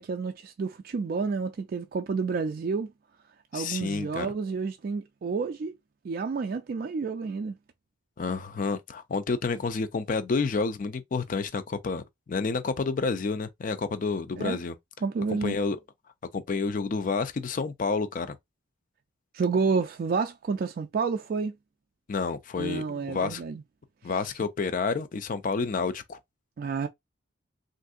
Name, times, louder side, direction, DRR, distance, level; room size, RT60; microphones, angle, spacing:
voice 1, 0.0-2.9 3.5-5.8 6.0-7.6 14.4-14.6 15.0-15.6 19.3-21.6 22.6-23.6 26.6-26.9, right 5 dB, 50° right, 0.3 m, -29 dB
voice 2, 3.5-4.3 8.2-14.7 15.3-15.8 16.3-18.4 22.1-23.4 24.0-26.2, left 4 dB, 45° left, 0.4 m, -29 dB
3.4 x 2.6 x 2.4 m
head